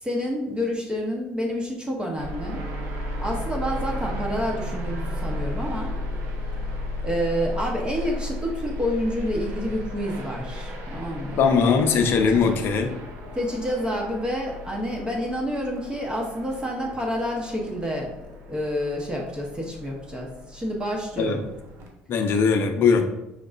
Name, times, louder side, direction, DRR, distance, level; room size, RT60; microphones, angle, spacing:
voice 1, 0.0-2.7 3.2-5.9 7.0-11.5 12.1-12.6 13.3-18.1 18.5-21.4, equal, 20° right, -1 dB, 0.9 m, -28 dB
sound 1, 2.2-21.9, left 1 dB, 65° right, 0.9 m, -34 dB
voice 2, 11.4-12.9 21.2-21.4 22.1-23.1, left 5 dB, 55° left, 5 dB, 0.6 m, -20 dB
5.1 x 3.7 x 2.5 m, 0.91 s
supercardioid pair, 80°, 5 cm